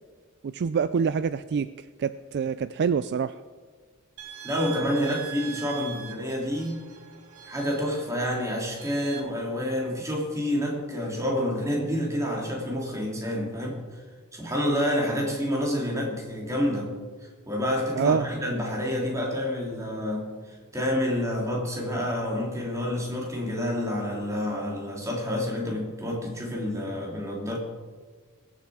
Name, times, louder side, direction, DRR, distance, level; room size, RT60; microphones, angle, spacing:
voice 1, 0.4-1.7 2.0-3.3 18.0-18.3, right 6 dB, 50° right, 14 dB, 0.3 m, -25 dB
sound 1, 4.2-9.2, right 10 dB, 75° right, 1.7 m, -42 dB
voice 2, 4.4-6.8 7.4-14.0 14.3-16.9 17.5-20.3 20.7-27.6, equal, 15° right, -2 dB, 3.0 m, -28 dB
21.5 x 7.4 x 4.9 m, 1.5 s
head